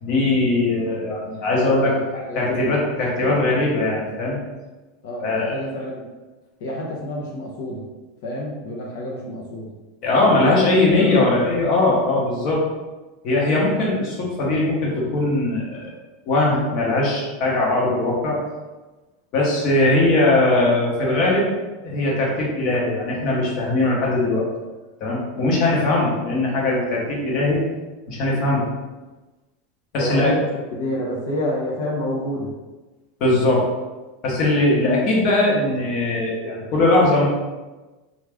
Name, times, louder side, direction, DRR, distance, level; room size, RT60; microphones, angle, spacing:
voice 1, 0.0-1.9 2.3-4.4 5.2-5.6 10.0-12.6 13.2-15.8 16.2-18.4 19.3-21.5 21.8-24.5 25.0-27.6 28.1-28.6 29.9-30.3 33.2-33.7 34.2-37.3, left 2 dB, 40° left, -3 dB, 1.0 m, -20 dB
voice 2, 0.7-1.1 1.5-2.7 5.0-6.0 6.6-7.8 8.2-9.7 10.2-10.5 10.9-11.3 25.3-25.4 25.8-25.9 30.0-32.5, equal, 75° left, -3 dB, 0.7 m, -29 dB
3.5 x 2.4 x 3.4 m, 1.2 s
supercardioid pair, 155°, 0 cm